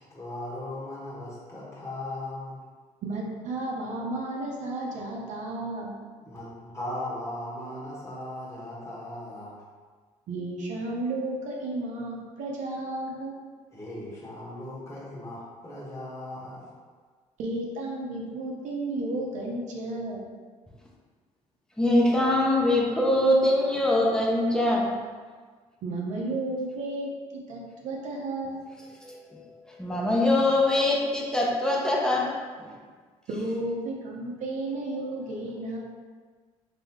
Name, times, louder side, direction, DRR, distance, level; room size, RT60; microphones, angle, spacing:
voice 1, 0.0-2.6 6.3-9.6 13.7-16.6, left 1 dB, 20° left, -7 dB, 1.2 m, -38 dB
voice 2, 3.0-5.9 10.3-13.4 17.4-20.2 25.8-28.6 33.3-35.8, right 2 dB, 65° right, -2 dB, 0.8 m, -33 dB
voice 3, 21.8-24.9 29.0-29.5 29.8-32.3 32.6-32.7, left 1 dB, 5° left, -3 dB, 0.8 m, -23 dB
3.4 x 2.9 x 3.6 m, 1.5 s
cardioid pair, 95°, 13 cm